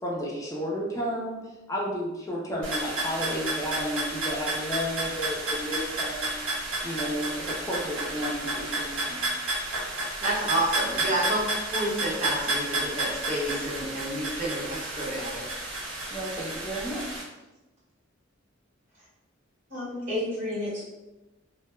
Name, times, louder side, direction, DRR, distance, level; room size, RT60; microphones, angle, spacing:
voice 1, 0.0-9.2 16.1-17.2, equal, 15° left, -4 dB, 0.5 m, -32 dB
sound 1, 2.6-17.2, right 2 dB, 70° right, 0.7 m, -31 dB
voice 2, 10.2-11.4 11.7-15.5, right 1 dB, 35° right, -6 dB, 0.8 m, -29 dB
voice 3, 19.7-20.8, left 1 dB, 50° right, -12 dB, 1.2 m, -31 dB
2.2 x 2.1 x 3.0 m, 1.0 s
head